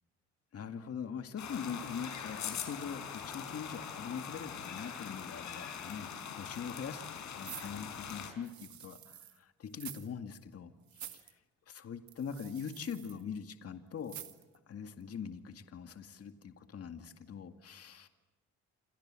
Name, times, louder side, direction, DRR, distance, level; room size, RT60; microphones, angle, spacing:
voice 1, 0.5-6.1 6.4-7.0 7.3-11.3 11.7-14.2 14.7-18.1, left 7 dB, 50° left, 7 dB, 2.1 m, -42 dB
sound 1, 1.4-8.3, left 7 dB, 70° left, 4.9 m, -42 dB
sound 2, 7.4-9.4 9.7-10.1 10.3-10.4 10.9-11.3 12.1-13.2 14.0-14.6 15.0-15.1, right 11 dB, 70° right, 2.1 m, -48 dB
28.0 x 27.5 x 7.6 m, 1.1 s
cardioid pair, 90°, 30 cm